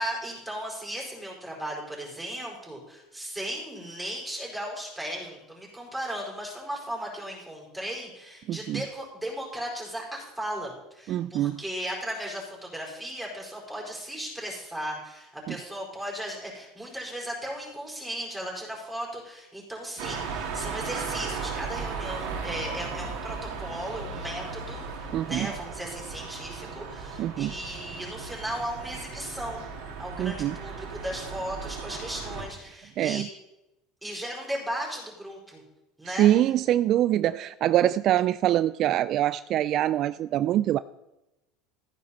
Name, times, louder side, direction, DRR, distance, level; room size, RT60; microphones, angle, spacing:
voice 1, 0.0-29.7 30.0-33.2 34.0-35.6 36.0-36.3, equal, 5° right, -2 dB, 4.8 m, -36 dB
voice 2, 8.5-8.8 11.1-11.6 15.5-15.6 25.1-25.5 27.2-27.5 30.2-30.6 33.0-33.3 36.1-40.8, right 12 dB, 50° right, 15 dB, 0.3 m, -24 dB
sound 1, 20.0-32.5, right 5 dB, 80° right, 2.5 m, -36 dB
14.5 x 9.6 x 4.2 m, 0.94 s
supercardioid pair, 120°, 0 cm